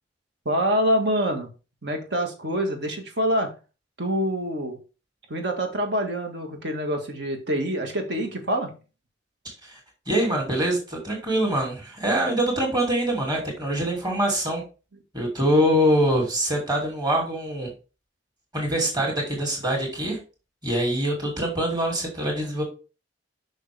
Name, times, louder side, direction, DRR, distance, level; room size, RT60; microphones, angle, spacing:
voice 1, 0.5-1.5 1.8-3.5 4.0-4.8 5.3-8.7, equal, 60° right, 4 dB, 1.8 m, -26 dB
voice 2, 10.1-14.6 15.1-17.7 18.5-20.2 20.6-22.6, right 1 dB, 20° right, -1 dB, 2.7 m, -24 dB
6.5 x 6.0 x 3.5 m, 0.32 s
head